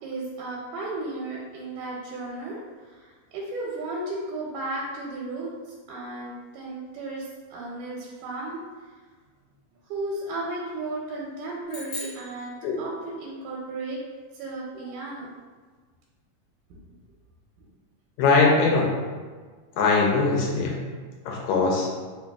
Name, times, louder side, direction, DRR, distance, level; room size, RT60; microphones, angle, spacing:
voice 1, 0.0-8.6 9.9-14.0 14.3-15.3, right 2 dB, 85° right, -4 dB, 2.0 m, -34 dB
sound 1, 11.7-13.3, left 1 dB, 55° left, 1.8 m, -40 dB
voice 2, 18.2-18.9 19.8-20.8 21.3-21.9, left 3 dB, 80° left, -2 dB, 1.9 m, -21 dB
4.5 x 2.6 x 2.2 m, 1.4 s
omnidirectional pair, 3.5 m